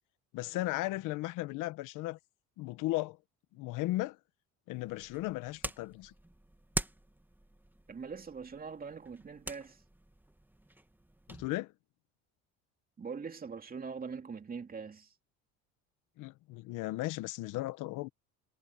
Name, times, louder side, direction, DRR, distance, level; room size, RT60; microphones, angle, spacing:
voice 1, 0.3-2.2 2.6-3.2 3.5-4.2 4.7-6.1 11.3-11.7 16.2-18.1, left 18 dB, 75° left, 1.3 m, -36 dB
sound 1, 4.7-11.5, right 1 dB, 5° right, 3.0 m, -44 dB
voice 2, 7.9-9.8 13.0-15.1, right 5 dB, 30° right, 3.0 m, -42 dB
supercardioid pair, 95°, 32 cm